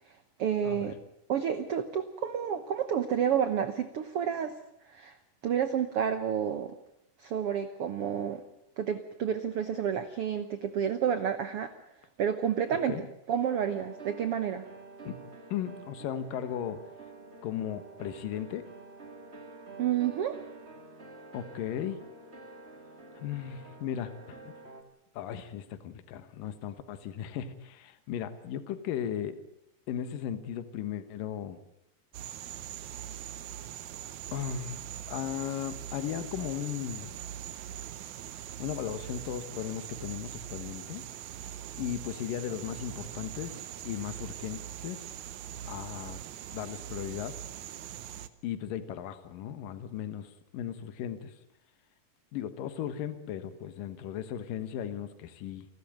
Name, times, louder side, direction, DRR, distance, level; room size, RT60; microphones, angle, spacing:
voice 1, 0.4-1.0 1.3-4.6 4.9-5.2 5.4-6.7 7.2-8.4 8.8-11.7 12.2-12.9 13.3-14.7 19.8-20.4, right 8 dB, 90° right, 10 dB, 1.2 m, -30 dB
sound 1, 13.4-24.8, right 3 dB, 20° right, 2.0 m, -48 dB
voice 2, 15.5-16.8 17.4-18.7 21.3-22.0 23.1-24.5 25.1-29.4 29.9-31.6 32.9-33.1 34.3-37.2 38.6-41.0 41.8-45.0 45.6-46.2 46.5-47.4 48.4-51.3 52.3-55.7, left 10 dB, 70° left, 11 dB, 2.9 m, -36 dB
sound 2, 32.1-48.3, right 10 dB, 70° right, 2.0 m, -42 dB
29.0 x 12.5 x 9.0 m, 0.81 s
omnidirectional pair, 4.2 m